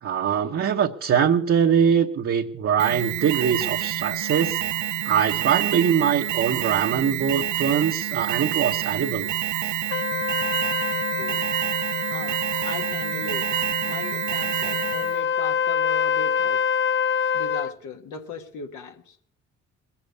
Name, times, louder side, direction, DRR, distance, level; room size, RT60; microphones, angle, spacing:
voice 1, 0.0-4.6 5.0-9.3, right 8 dB, 50° right, 1 dB, 1.0 m, -22 dB
Alarm, 2.8-15.2, right 14 dB, 70° right, 0.6 m, -28 dB
Trumpet, 9.9-17.7, left 7 dB, 40° left, 0.6 m, -26 dB
voice 2, 12.0-13.5 13.8-16.6 17.3-19.2, left 4 dB, 75° left, 4 dB, 1.4 m, -38 dB
21.0 x 7.1 x 8.1 m, 0.63 s
cardioid pair, 90°, 30 cm